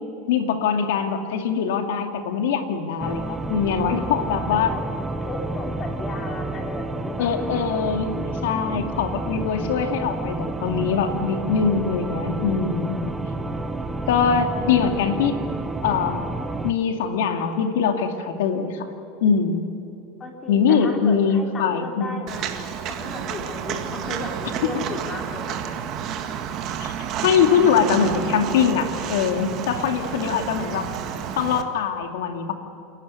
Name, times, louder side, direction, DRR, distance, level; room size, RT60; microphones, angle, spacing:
voice 1, 0.3-4.7 7.2-13.0 14.1-15.4 15.8-16.3 16.6-18.9 19.2-19.7 20.5-22.2 26.8-26.9 27.2-30.9 31.4-32.5, left 6 dB, 85° left, 5 dB, 2.4 m, -22 dB
sound 1, 3.0-16.7, right 2 dB, 10° right, 1.2 m, -30 dB
voice 2, 4.5-4.8 5.2-7.5 20.2-22.5 22.9-25.6 29.4-29.5 30.0-30.7, left 2 dB, 25° left, 2 dB, 3.7 m, -35 dB
Walk footsteps, 22.3-31.6, right 8 dB, 45° right, 1.8 m, -30 dB
28.5 x 11.5 x 9.7 m, 2.8 s
supercardioid pair, 135°, 0 cm